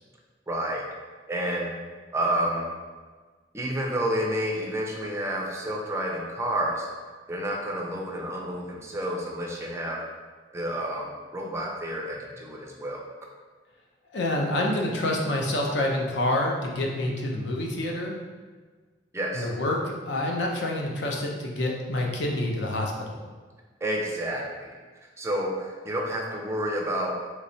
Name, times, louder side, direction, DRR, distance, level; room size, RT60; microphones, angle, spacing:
voice 1, 0.5-0.9 1.3-1.7 2.1-2.7 3.5-6.9 7.3-10.0 10.5-13.0 19.1-19.5 23.8-24.8 25.2-27.2, right 1 dB, 15° right, -1 dB, 0.4 m, -29 dB
voice 2, 14.1-18.2 19.3-23.2, left 1 dB, 70° left, 0 dB, 0.6 m, -27 dB
3.4 x 3.1 x 2.7 m, 1.4 s
head